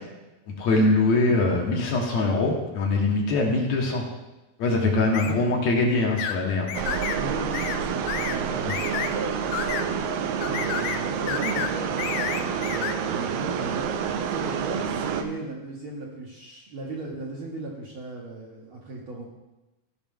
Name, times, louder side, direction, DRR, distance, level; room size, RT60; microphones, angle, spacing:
voice 1, 0.6-4.0 4.6-6.7 8.7-8.8, left 2 dB, 65° left, -1 dB, 2.5 m, -23 dB
sound 1, 5.1-5.3 6.2-6.4 6.7-7.2 7.5-7.8 8.1-8.4 8.7-9.1 9.5-9.9 10.4-11.0 11.3-11.7 12.0-12.9, left 10 dB, 85° left, 2.0 m, -30 dB
sound 2, 6.7-15.2, right 7 dB, 80° right, 1.4 m, -28 dB
voice 2, 7.1-10.1 10.4-19.2, right 2 dB, 60° right, -3 dB, 1.5 m, -36 dB
14.5 x 5.6 x 3.7 m, 1.0 s
omnidirectional pair, 3.4 m